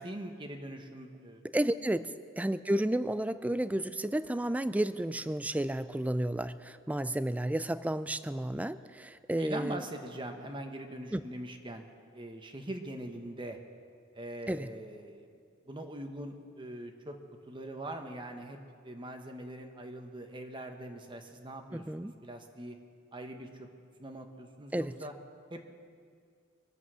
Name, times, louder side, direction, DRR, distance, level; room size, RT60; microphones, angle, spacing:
voice 1, 0.0-1.4 9.4-11.8 12.1-13.6 14.1-15.3 15.7-17.2 17.5-18.6 18.8-22.8 23.1-23.7 24.0-25.1 25.5-25.6, right 1 dB, 25° right, 4 dB, 1.2 m, -42 dB
voice 2, 1.5-9.8 11.1-11.2 14.5-14.7 21.7-22.1 24.7-25.0, right 1 dB, 5° right, 14 dB, 0.3 m, -32 dB
24.0 x 8.2 x 6.3 m, 2.2 s
head